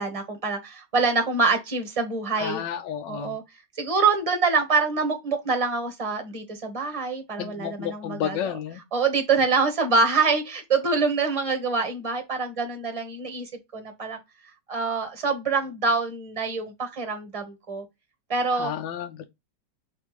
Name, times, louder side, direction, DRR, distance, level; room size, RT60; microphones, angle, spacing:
voice 1, 0.0-2.6 3.1-3.4 3.8-8.6 8.9-14.2 14.7-17.8 18.3-18.7, right 4 dB, 20° right, 1.1 m, -25 dB
voice 2, 2.4-3.4 7.4-8.8 18.5-19.2, left 9 dB, 80° left, 1.3 m, -31 dB
3.4 x 3.3 x 4.6 m
omnidirectional pair, 1.9 m